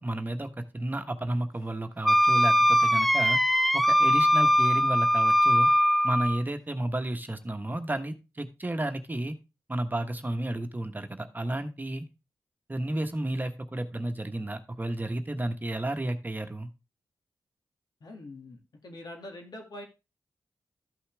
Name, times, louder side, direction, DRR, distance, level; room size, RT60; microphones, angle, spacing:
voice 1, 0.0-3.4 3.7-5.7 6.0-9.4 9.7-12.1 12.7-16.7, right 1 dB, 25° right, 7 dB, 1.2 m, -32 dB
Wind instrument woodwind instrument, 2.0-6.4, equal, ahead, 0.5 m, -21 dB
voice 2, 18.0-19.9, left 1 dB, 70° left, 3 dB, 2.2 m, -44 dB
13.0 x 5.6 x 3.4 m, 0.29 s
cardioid pair, 50°, 7 cm